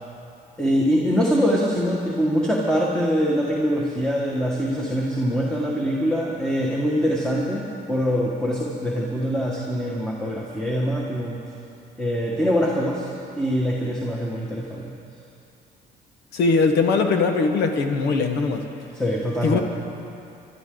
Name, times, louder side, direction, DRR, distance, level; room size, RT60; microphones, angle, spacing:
voice 1, 0.6-11.4 12.0-13.1 13.4-14.9 18.9-19.6, equal, 5° left, -4 dB, 1.7 m, -23 dB
voice 2, 16.3-18.6 19.4-19.6, left 4 dB, 80° left, 5 dB, 1.4 m, -20 dB
25.0 x 12.0 x 3.9 m, 2.7 s
cardioid pair, 110°, 17 cm